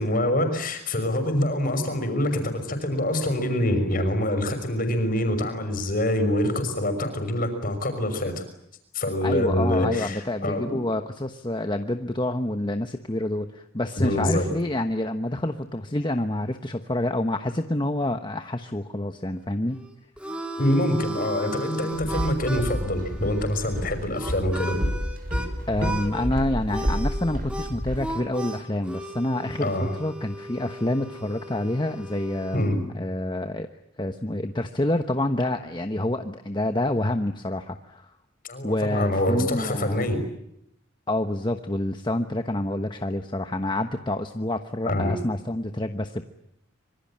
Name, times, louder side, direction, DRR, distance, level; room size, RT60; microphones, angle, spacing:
voice 1, 0.0-8.4 8.9-10.8 14.0-14.5 20.6-24.8 29.6-29.9 32.5-32.8 38.4-40.2 44.9-45.2, left 1 dB, 45° left, 8 dB, 5.9 m, -25 dB
voice 2, 9.2-19.8 25.7-33.7 34.0-38.1 38.6-40.1 41.1-46.2, left 1 dB, 20° left, 7 dB, 1.1 m, -27 dB
Harmonica, 19.7-25.5 25.8-26.3 26.7-32.7, equal, 5° right, 3.1 m, -36 dB
Walk footsteps, 21.9-28.0, equal, 45° right, 5.9 m, -30 dB
26.5 x 24.5 x 8.8 m, 0.78 s
head